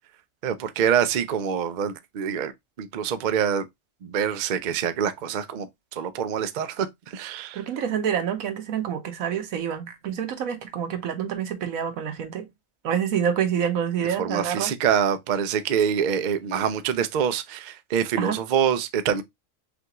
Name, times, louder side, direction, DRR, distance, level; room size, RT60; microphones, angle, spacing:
voice 1, 0.4-2.5 2.8-3.6 4.0-5.7 6.0-6.9 7.1-7.6 14.2-19.2, right 8 dB, 60° right, 0.5 m, -25 dB
voice 2, 7.5-12.5 12.8-14.7 18.2-18.4, right 8 dB, 90° right, 1.3 m, -27 dB
5.9 x 2.4 x 2.9 m
omnidirectional pair, 1.4 m